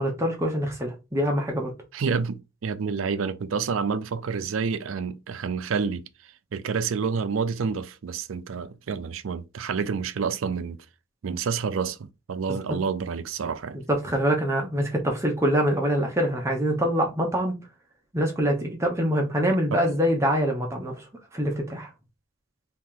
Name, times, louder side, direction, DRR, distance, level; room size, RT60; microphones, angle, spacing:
voice 1, 0.0-1.7 13.9-17.5 18.1-21.1 21.3-21.9, equal, 15° right, 0.8 m, -24 dB
voice 2, 1.9-6.0 6.5-10.8 11.2-13.8 14.8-14.9 19.7-19.8, right 5 dB, 90° right, 0.4 m, -28 dB
2.9 x 2.9 x 3.7 m
head